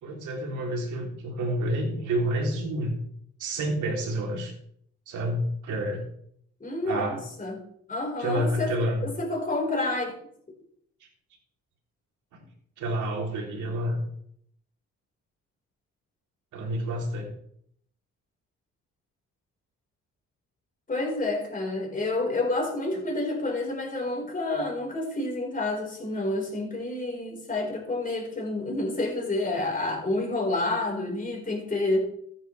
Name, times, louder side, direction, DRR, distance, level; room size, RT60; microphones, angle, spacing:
voice 1, 0.0-3.0 3.4-4.5 5.1-6.0 6.9-7.2 8.2-9.1 12.8-14.0 16.5-17.3, right 1 dB, 80° right, 0 dB, 3.4 m, -29 dB
voice 2, 6.6-7.6 7.9-8.7 9.2-10.1 20.9-32.1, left 2 dB, 25° left, -1 dB, 4.8 m, -29 dB
14.5 x 9.5 x 3.4 m, 0.67 s
cardioid pair, 90°, 30 cm